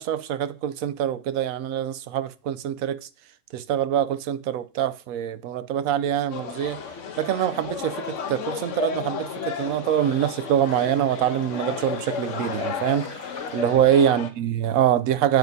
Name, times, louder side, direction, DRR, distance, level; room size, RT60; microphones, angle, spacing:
voice 1, 0.0-3.1 3.5-6.8 7.2-13.1 13.5-15.4, right 10 dB, 75° right, 1.0 m, -24 dB
sound 1, 6.3-14.3, left 6 dB, 65° left, 1.2 m, -33 dB
sound 2, 7.8-8.0 8.6-13.8, left 3 dB, 80° left, 2.7 m, -46 dB
9.0 x 7.9 x 2.7 m
omnidirectional pair, 1.5 m